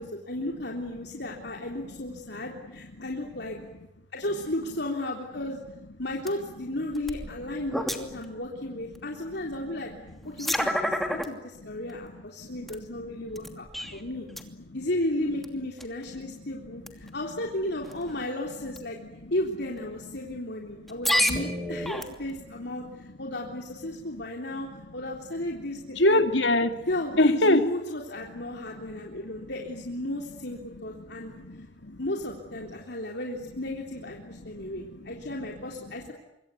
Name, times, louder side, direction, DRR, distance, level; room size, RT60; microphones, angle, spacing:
voice 1, 0.0-3.6 4.1-5.6 6.0-9.9 10.2-13.6 13.9-14.3 14.7-19.0 19.3-24.7 24.9-26.2 26.9-31.3 32.0-36.1, left 1 dB, 65° left, 0 dB, 3.7 m, -34 dB
sound 1, 6.3-6.4 6.9-8.3 8.9-9.0 10.1-11.3 11.9-12.0 12.7-12.8 13.3-14.0 14.3-14.4 15.4-15.5 15.8-16.0 16.9-17.1 17.8-18.1 18.7-18.8 19.8-19.9 20.9-22.4, equal, ahead, 2.7 m, -29 dB
voice 2, 9.7-10.0 10.4-11.2 11.7-14.4 14.7-14.8 16.1-16.8 17.0-17.1 18.9-19.3 20.0-20.1 20.8-21.0 22.7-24.9 25.9-26.8 27.2-27.6 28.3-29.5 30.1-30.2 30.6-32.0 32.7-32.8 34.3-35.5, left 1 dB, 80° left, 8 dB, 2.4 m, -30 dB
26.0 x 23.5 x 9.4 m, 0.90 s
head